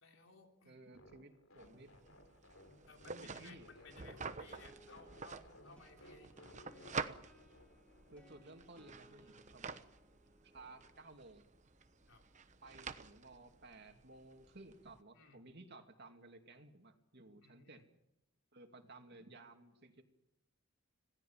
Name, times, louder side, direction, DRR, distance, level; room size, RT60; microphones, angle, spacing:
voice 1, 0.0-0.8 2.9-6.3 6.8-7.0 12.1-12.3 15.1-15.4 17.4-17.8, left 4 dB, 70° left, 3 dB, 3.7 m, -60 dB
voice 2, 0.7-2.2 3.1-3.7 8.1-9.8 10.4-11.4 12.6-17.9 18.5-20.0, right 2 dB, 55° right, 5 dB, 2.6 m, -57 dB
sound 1, 0.9-8.4, left 1 dB, 90° left, 3.5 m, -61 dB
sound 2, 1.6-15.0, right 5 dB, 35° right, 1.1 m, -49 dB
sound 3, 4.0-13.6, right 1 dB, 5° left, 3.8 m, -67 dB
26.5 x 17.5 x 7.5 m, 0.85 s
head